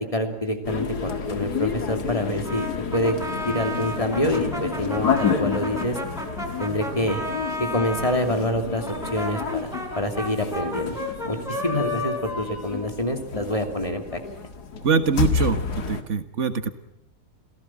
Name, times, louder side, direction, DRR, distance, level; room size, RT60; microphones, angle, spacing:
voice 1, 0.1-3.2 3.5-6.0 6.6-7.2 7.6-8.8 9.1-9.7 10.0-11.0 11.2-14.2, left 1 dB, 20° left, 5 dB, 2.9 m, -26 dB
sound 1, 0.6-16.0, left 6 dB, 80° left, 2.4 m, -30 dB
Brass instrument, 2.4-8.2 8.8-13.6, left 1 dB, ahead, 4.6 m, -33 dB
voice 2, 14.8-16.7, right 5 dB, 50° right, 10 dB, 1.9 m, -23 dB
27.5 x 17.5 x 7.4 m, 0.78 s
omnidirectional pair, 1.7 m